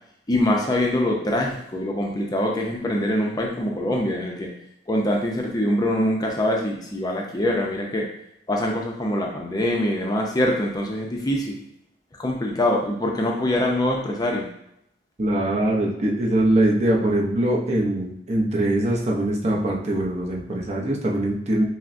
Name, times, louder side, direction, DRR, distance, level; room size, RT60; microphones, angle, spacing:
voice 1, 0.3-4.5 4.9-8.1 8.5-11.6 12.2-14.5, left 1 dB, 20° left, 0 dB, 0.5 m, -24 dB
voice 2, 15.2-21.6, right 1 dB, 40° right, -2 dB, 0.7 m, -22 dB
5.7 x 2.1 x 2.6 m, 0.76 s
head